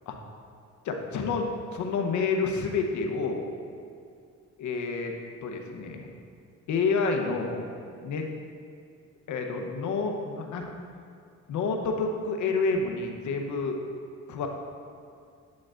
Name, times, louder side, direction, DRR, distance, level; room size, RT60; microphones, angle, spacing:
voice 1, 0.8-3.5 4.6-5.1 5.4-6.1 6.7-7.7 8.0-8.3 9.3-10.7 11.5-13.8 14.3-14.5, left 4 dB, 70° left, 3 dB, 0.9 m, -29 dB
9.5 x 7.5 x 2.5 m, 2.3 s
cardioid pair, 90°, 30 cm